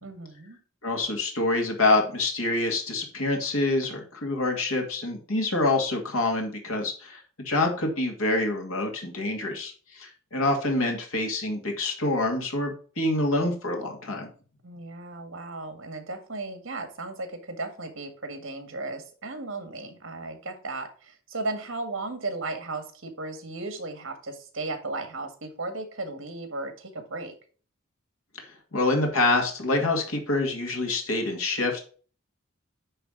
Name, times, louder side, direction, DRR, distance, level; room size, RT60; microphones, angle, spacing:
voice 1, 0.0-0.6 14.6-27.3, right 2 dB, 70° right, 7 dB, 1.8 m, -35 dB
voice 2, 0.8-14.3 28.4-31.8, left 2 dB, 85° left, 3 dB, 2.4 m, -26 dB
10.0 x 3.5 x 5.0 m, 0.40 s
head